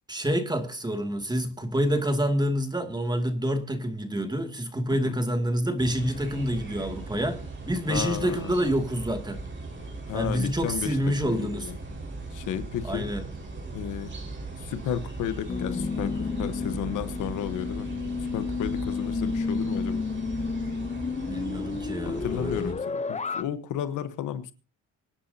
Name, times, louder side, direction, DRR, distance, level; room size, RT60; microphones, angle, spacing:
voice 1, 0.1-9.4 10.1-11.7 12.8-13.2 21.3-22.7, equal, 15° right, 2.4 m, -28 dB
sound 1, 5.8-22.7, right 3 dB, 40° right, 4.7 m, -38 dB
voice 2, 7.9-8.7 10.1-11.8 12.3-13.1 13.7-14.1 14.6-17.9 18.3-20.0 22.0-24.5, left 10 dB, 85° left, 1.2 m, -33 dB
sound 2, 15.5-23.4, left 4 dB, 25° left, 0.7 m, -31 dB
25.0 x 9.9 x 2.8 m
cardioid pair, 90°, 30 cm